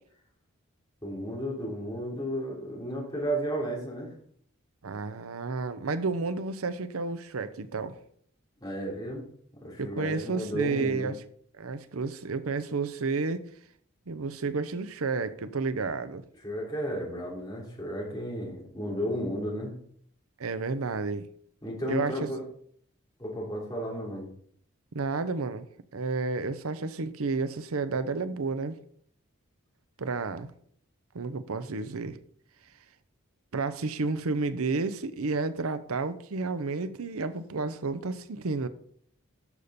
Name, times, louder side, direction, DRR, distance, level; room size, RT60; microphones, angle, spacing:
voice 1, 1.0-4.1 8.6-9.2 9.6-11.1 16.4-19.7 21.6-22.4 23.2-24.3, equal, 20° left, 3.4 m, -33 dB
voice 2, 4.8-7.9 9.8-11.2 11.6-13.4 14.1-16.2 20.4-21.3 21.9-22.3 24.9-25.7 25.9-28.8 30.0-30.5 31.1-32.2 33.5-38.7, right 4 dB, 90° right, 0.7 m, -31 dB
12.0 x 6.7 x 4.2 m
head